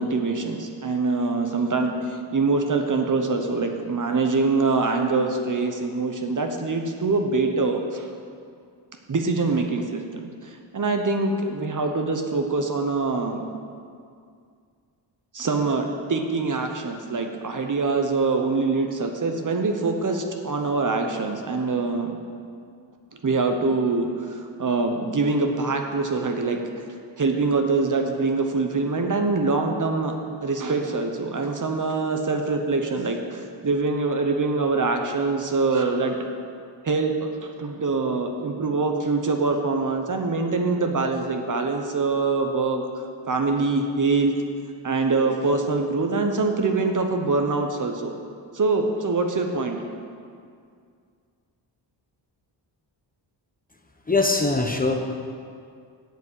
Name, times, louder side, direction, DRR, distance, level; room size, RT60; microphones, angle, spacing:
voice 1, 0.0-8.1 9.1-10.0 10.4-13.5 15.3-22.2 23.2-26.6 27.2-30.1 30.4-36.2 36.8-42.8 43.3-44.3 44.8-48.1 48.5-49.8, right 3 dB, 45° right, 4 dB, 1.1 m, -24 dB
voice 2, 54.1-54.9, left 3 dB, 20° left, 3 dB, 0.9 m, -21 dB
8.2 x 7.1 x 8.2 m, 2.2 s
wide cardioid pair, 110°, 45 cm